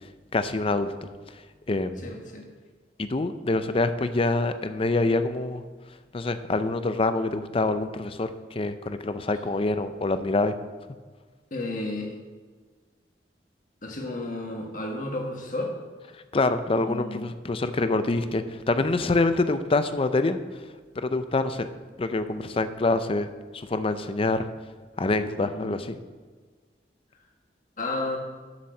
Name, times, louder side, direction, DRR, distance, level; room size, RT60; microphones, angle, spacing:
voice 1, 0.3-1.1 1.7-2.1 3.0-5.6 6.1-10.5 16.3-20.6 21.0-21.7 22.0-23.3 23.5-24.5 25.0-26.0, left 2 dB, 30° left, 10 dB, 0.5 m, -26 dB
voice 2, 2.0-2.5 11.5-12.1 13.8-15.7 16.7-17.2 25.4-25.7 27.8-28.2, left 2 dB, 50° left, 1 dB, 1.6 m, -32 dB
7.3 x 7.1 x 6.5 m, 1.4 s
head